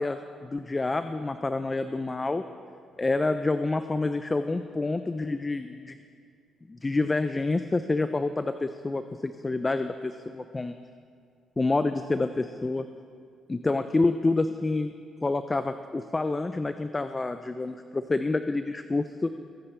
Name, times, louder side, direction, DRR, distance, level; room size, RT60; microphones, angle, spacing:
voice 1, 0.0-2.4 3.0-6.0 6.7-10.7 11.6-12.9 13.5-14.9 15.2-19.3, left 3 dB, 20° left, 10 dB, 0.4 m, -28 dB
21.0 x 9.8 x 3.4 m, 2.3 s
cardioid pair, 90°, 0 cm